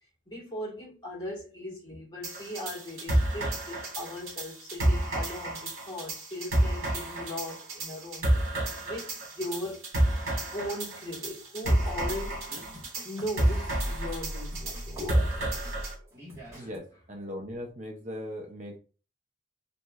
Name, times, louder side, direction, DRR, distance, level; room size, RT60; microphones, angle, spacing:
voice 1, 0.2-9.9 10.5-12.4 13.0-15.2 16.6-16.7, left 1 dB, 20° left, 1.6 m, -39 dB
sound 1, 2.2-15.9, right 1 dB, 80° right, 1.9 m, -30 dB
sound 2, 11.6-16.8, equal, 15° right, 1.3 m, -39 dB
voice 2, 16.5-18.8, equal, 35° right, 0.6 m, -39 dB
3.8 x 3.0 x 2.3 m
head